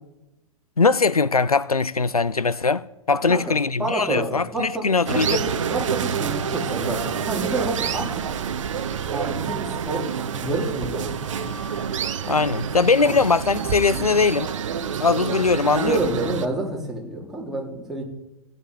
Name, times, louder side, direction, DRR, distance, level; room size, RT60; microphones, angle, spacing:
voice 1, 0.8-5.4 12.3-14.5 15.0-16.0, left 4 dB, 90° left, 0.4 m, -21 dB
voice 2, 3.1-4.8 5.1-8.1 9.1-10.1 10.3-11.5 13.0-13.2 15.7-18.0, right 2 dB, ahead, 3.6 m, -28 dB
sound 1, 5.1-16.5, right 7 dB, 60° right, 1.0 m, -28 dB
16.0 x 9.8 x 4.9 m
figure-of-eight pair, 105°, 18 cm